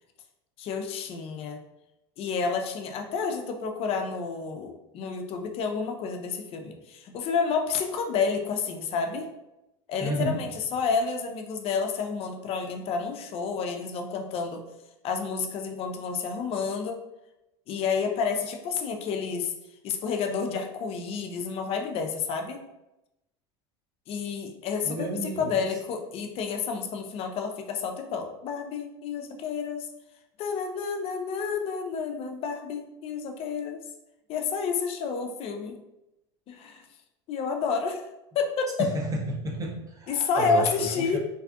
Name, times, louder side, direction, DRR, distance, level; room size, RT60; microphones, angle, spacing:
voice 1, 0.6-1.6 2.2-9.3 9.9-14.6 15.0-17.0 17.7-19.5 19.8-22.6 24.1-29.9 30.4-33.8 34.3-35.8 36.5-36.8 37.3-38.1 38.3-38.7 40.1-41.2, left 5 dB, 45° left, 4 dB, 0.4 m, -30 dB
voice 2, 10.0-10.3 24.8-25.6 38.8-40.9 41.1-41.2, right 1 dB, 25° right, 0 dB, 0.6 m, -31 dB
2.6 x 2.4 x 2.3 m, 0.92 s
supercardioid pair, 100°, 14 cm